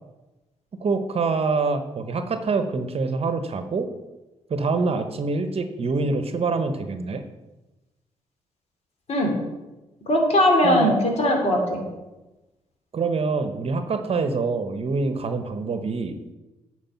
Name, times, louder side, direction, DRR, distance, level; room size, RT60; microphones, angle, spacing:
voice 1, 0.8-3.9 4.5-7.2 10.6-10.9 12.9-16.3, right 4 dB, 45° right, 8 dB, 0.9 m, -25 dB
voice 2, 10.1-11.8, left 1 dB, 50° left, 1 dB, 2.7 m, -20 dB
9.0 x 4.8 x 5.9 m, 1.1 s
supercardioid pair, 50°, 13 cm